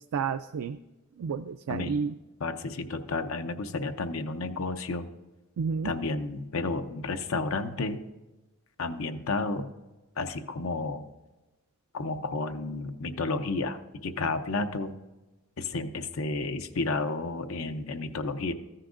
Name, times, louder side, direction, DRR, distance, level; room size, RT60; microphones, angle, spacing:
voice 1, 0.1-0.8 1.2-2.2 5.6-5.9, right 6 dB, 85° right, 10 dB, 0.3 m, -30 dB
voice 2, 2.4-5.1 5.8-8.0 8.8-9.7 10.2-11.0 11.9-14.9 15.6-18.5, left 3 dB, 70° left, 8 dB, 0.6 m, -31 dB
14.0 x 9.8 x 2.5 m, 1.1 s
head